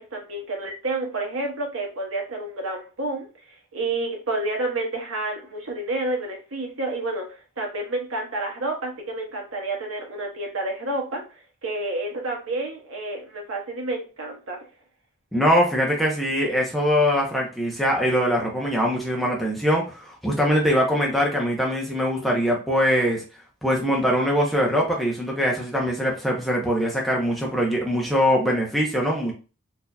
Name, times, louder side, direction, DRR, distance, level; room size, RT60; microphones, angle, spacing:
voice 1, 0.0-14.6, right 2 dB, 70° right, 0 dB, 1.1 m, -30 dB
voice 2, 15.3-23.2 23.6-29.3, equal, ahead, -3 dB, 0.7 m, -22 dB
4.4 x 2.7 x 2.2 m, 0.33 s
head